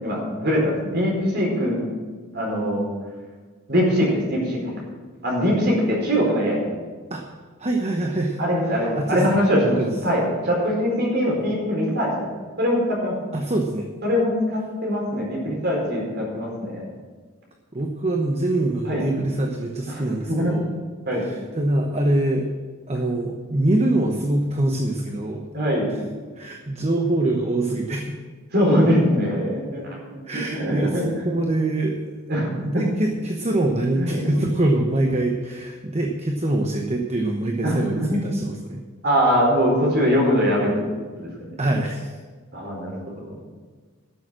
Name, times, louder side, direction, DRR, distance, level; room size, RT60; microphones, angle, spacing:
voice 1, 0.0-1.9 2.3-2.9 3.7-4.8 5.2-6.7 8.4-12.2 12.6-13.1 14.0-16.8 18.9-19.0 19.9-20.5 21.1-21.3 25.5-25.9 28.5-31.4 32.3-32.9 33.9-34.4 37.6-38.2 39.0-40.7 41.2-41.3 42.5-43.4, equal, 50° right, -2 dB, 4.6 m, -22 dB
voice 2, 7.6-8.4 8.9-9.3 9.6-9.9 13.3-13.9 17.7-20.7 21.2-22.5 22.9-25.4 26.4-28.0 30.3-32.1 32.6-38.8 41.6-42.1, right 1 dB, 30° right, 2 dB, 0.9 m, -24 dB
12.5 x 7.1 x 7.6 m, 1.4 s
head